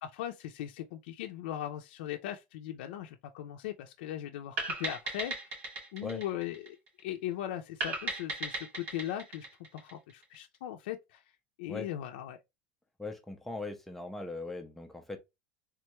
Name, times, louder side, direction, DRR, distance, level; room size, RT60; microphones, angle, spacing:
voice 1, 0.0-5.5 5.9-6.8 7.0-9.5 9.7-11.2 11.6-12.4, left 12 dB, 75° left, 0.4 m, -39 dB
sound 1, 4.6-7.1 7.8-10.4, right 2 dB, 75° right, 2.0 m, -37 dB
voice 2, 13.0-15.2, left 2 dB, 5° left, 0.3 m, -40 dB
3.5 x 2.2 x 2.9 m
supercardioid pair, 175°, 5 cm